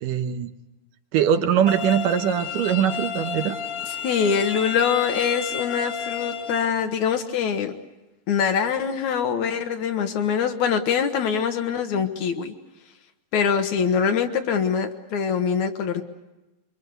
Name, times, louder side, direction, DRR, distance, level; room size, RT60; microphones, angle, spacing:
voice 1, 0.0-0.5 1.1-3.6, right 9 dB, 75° right, 8 dB, 2.6 m, -22 dB
sound 1, 1.7-6.7, left 7 dB, 35° left, 1.7 m, -32 dB
voice 2, 4.0-7.7 8.3-12.5 13.3-16.0, left 7 dB, 65° left, 7 dB, 2.3 m, -23 dB
25.5 x 23.5 x 8.0 m, 1.0 s
omnidirectional pair, 3.9 m